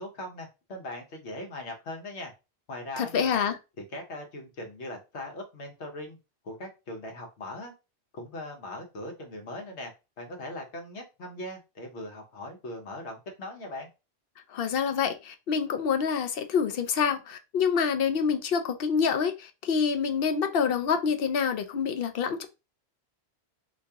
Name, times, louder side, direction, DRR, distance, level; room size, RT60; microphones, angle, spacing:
voice 1, 0.0-2.3 2.7-3.4 3.8-6.2 6.4-7.7 8.1-9.9 10.2-13.9, left 1 dB, 80° left, 1.3 m, -40 dB
voice 2, 3.0-3.6 14.5-22.5, left 6 dB, 65° left, 0.7 m, -27 dB
2.8 x 2.8 x 3.5 m
omnidirectional pair, 1.1 m